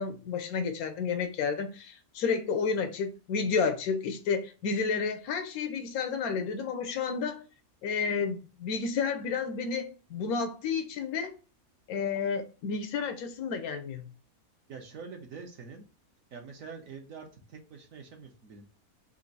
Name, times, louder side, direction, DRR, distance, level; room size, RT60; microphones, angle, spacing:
voice 1, 0.0-7.4 7.8-11.4 11.9-14.1, left 5 dB, 90° left, 1.2 m, -31 dB
voice 2, 14.7-15.8 16.3-18.6, right 5 dB, 70° right, 1.4 m, -45 dB
4.4 x 2.6 x 3.9 m
omnidirectional pair, 1.5 m